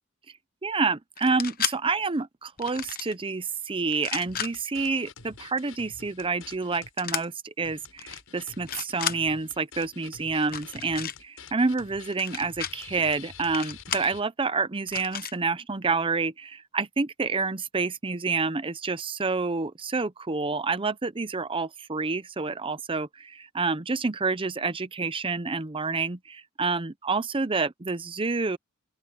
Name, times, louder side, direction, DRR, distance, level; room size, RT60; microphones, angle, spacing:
voice 1, 0.6-28.6, right 4 dB, 25° right, 0.7 m, -28 dB
sound 1, 1.2-1.8 2.6-3.1 3.9-4.5 7.0-7.2 8.0-8.2 8.5-9.2 10.4-11.2 12.1-12.7 13.5-14.1 14.9-15.3, left 9 dB, 45° left, 0.9 m, -33 dB
sound 2, 4.3-6.9 7.2-7.3 7.6-14.2, left 5 dB, 85° left, 7.2 m, -48 dB
open air
head